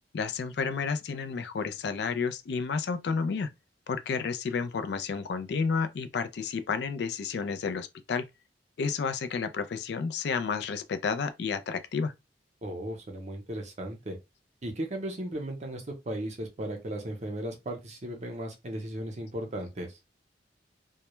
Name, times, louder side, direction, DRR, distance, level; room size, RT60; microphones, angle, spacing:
voice 1, 0.1-3.5 3.9-8.2 8.8-12.1, left 5 dB, 65° left, 0.4 m, -31 dB
voice 2, 12.6-14.2 14.6-19.9, right 1 dB, 40° right, 0.7 m, -36 dB
2.1 x 2.1 x 3.0 m
head